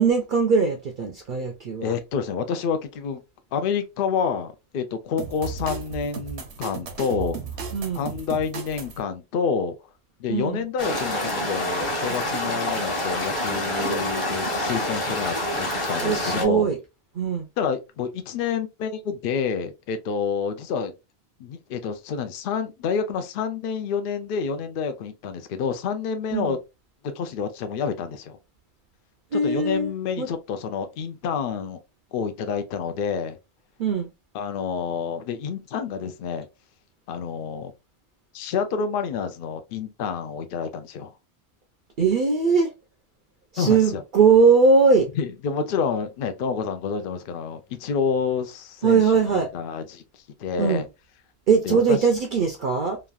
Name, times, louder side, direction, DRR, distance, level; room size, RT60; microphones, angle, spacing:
voice 1, 0.0-2.0 7.7-8.1 10.3-10.6 16.0-16.8 17.1-17.5 26.3-26.6 29.3-29.9 30.2-30.3 33.8-34.1 42.0-42.7 43.5-45.1 48.8-49.5 50.6-50.9 51.5-53.0, right 5 dB, 55° right, 0.6 m, -20 dB
voice 2, 1.8-3.2 3.5-7.7 7.9-9.7 10.2-16.7 17.6-20.9 21.4-26.6 27.1-28.4 29.3-31.8 32.1-33.4 34.3-36.5 37.1-37.7 38.3-41.1 43.6-44.0 45.2-50.0 50.4-50.9 51.6-52.1, left 6 dB, 60° left, 0.7 m, -28 dB
sound 1, 5.2-9.0, right 6 dB, 80° right, 1.0 m, -35 dB
sound 2, 10.8-16.4, left 1 dB, 30° left, 0.9 m, -27 dB
3.0 x 2.3 x 2.3 m
omnidirectional pair, 1.1 m